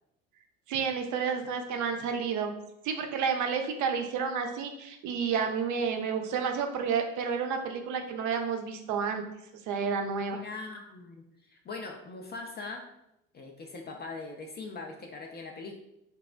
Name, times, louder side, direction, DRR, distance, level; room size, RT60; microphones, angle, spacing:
voice 1, 0.7-2.5 2.8-9.2 9.7-10.4, right 6 dB, 45° right, 4 dB, 0.5 m, -30 dB
voice 2, 10.4-12.8 13.3-15.7, left 3 dB, 25° left, 2 dB, 0.4 m, -41 dB
3.4 x 2.0 x 2.4 m, 0.83 s
hypercardioid pair, 65°, 41 cm